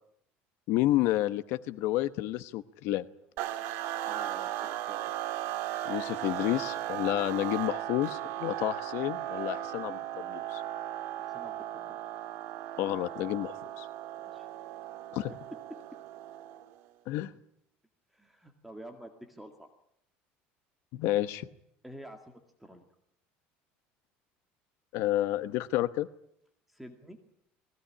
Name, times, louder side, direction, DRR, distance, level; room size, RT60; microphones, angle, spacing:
voice 1, 0.7-3.0 5.8-10.6 12.8-13.9 15.1-15.3 17.1-17.3 20.9-21.4 24.9-26.1, left 15 dB, 65° left, 13 dB, 1.0 m, -30 dB
sound 1, 3.4-16.8, right 13 dB, 70° right, 1.8 m, -37 dB
voice 2, 4.1-5.1 11.2-12.0 14.2-14.5 18.1-19.7 21.8-22.9 26.7-27.2, right 1 dB, ahead, 4 dB, 2.0 m, -49 dB
20.5 x 17.5 x 10.0 m, 0.75 s
cardioid pair, 145°, 5 cm